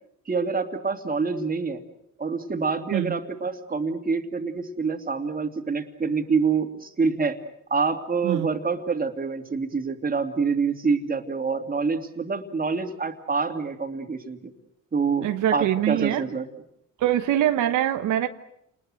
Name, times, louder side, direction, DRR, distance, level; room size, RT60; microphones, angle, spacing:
voice 1, 0.3-1.8 2.2-7.4 7.7-14.5 14.9-16.5, right 5 dB, 30° right, 5 dB, 2.7 m, -26 dB
voice 2, 15.2-16.2 17.0-18.3, right 12 dB, 85° right, 7 dB, 1.3 m, -23 dB
29.0 x 20.5 x 7.8 m, 0.75 s
cardioid pair, 90°, 30 cm